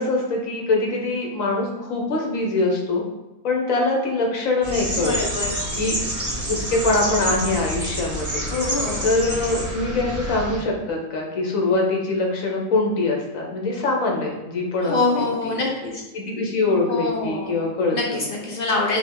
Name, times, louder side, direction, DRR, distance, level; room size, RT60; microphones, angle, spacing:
voice 1, 0.0-3.1 3.4-5.2 5.8-6.0 6.5-8.5 9.0-15.6 16.1-18.3, left 2 dB, 75° left, 0 dB, 1.3 m, -23 dB
sound 1, 4.6-10.6, right 1 dB, 20° right, 0.5 m, -28 dB
voice 2, 5.0-5.6 8.5-9.1 14.9-16.0 16.9-17.6 17.9-19.0, left 3 dB, 50° left, -1 dB, 0.7 m, -25 dB
5.8 x 2.1 x 3.6 m, 1.1 s
omnidirectional pair, 1.4 m